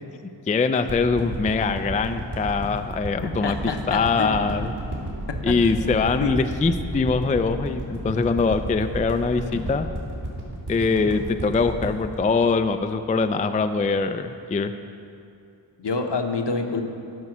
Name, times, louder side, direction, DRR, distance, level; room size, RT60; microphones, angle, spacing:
voice 1, 0.5-4.8 5.4-9.9 10.7-14.7, left 4 dB, 20° left, 9 dB, 0.3 m, -23 dB
sound 1, 0.9-13.2 13.6-13.7, right 1 dB, 60° right, 2.2 m, -32 dB
voice 2, 3.2-4.5 5.4-5.5 6.2-6.3 15.8-16.8, left 4 dB, 65° left, 5 dB, 0.9 m, -27 dB
11.0 x 5.5 x 6.0 m, 2.6 s
wide cardioid pair, 60°, 45 cm